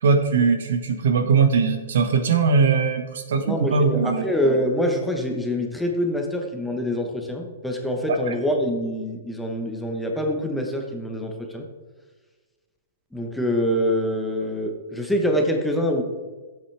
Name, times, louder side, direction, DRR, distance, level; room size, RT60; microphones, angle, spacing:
voice 1, 0.0-4.3, right 5 dB, 75° right, 6 dB, 1.5 m, -20 dB
voice 2, 3.4-11.6 13.1-16.0, equal, ahead, 2 dB, 1.1 m, -25 dB
13.5 x 8.1 x 3.4 m, 1.3 s
hypercardioid pair, 155°, 0 cm